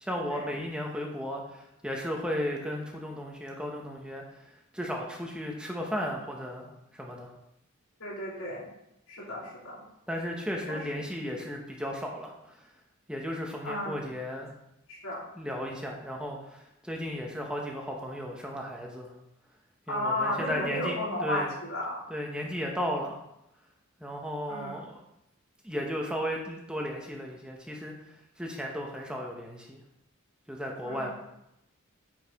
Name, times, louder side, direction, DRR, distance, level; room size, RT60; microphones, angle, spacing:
voice 1, 0.0-4.2 4.7-7.3 10.1-12.6 13.1-14.5 15.4-19.1 19.9-21.5 22.1-23.2 24.0-25.0 25.6-27.9 28.4-29.8 30.5-31.1, equal, 5° right, 0 dB, 0.9 m, -35 dB
voice 2, 8.0-8.7 9.1-9.8 10.7-10.8 13.6-14.1 14.9-15.2 19.9-22.0 24.5-24.9 30.8-31.1, left 1 dB, 85° left, -4 dB, 2.4 m, -33 dB
8.8 x 4.7 x 3.5 m, 0.82 s
head